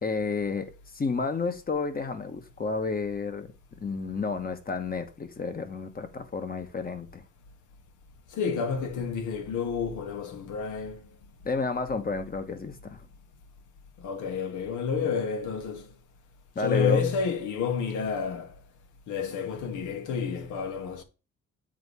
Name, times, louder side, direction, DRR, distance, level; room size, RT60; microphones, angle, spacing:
voice 1, 0.0-3.5 3.8-7.2 11.4-13.0 16.5-17.0, left 4 dB, 30° left, 1.1 m, -31 dB
voice 2, 8.3-11.1 14.0-15.9 16.6-18.5 19.1-21.0, left 6 dB, 80° left, 1.1 m, -30 dB
7.4 x 2.7 x 4.7 m
cardioid pair, 90°, 30 cm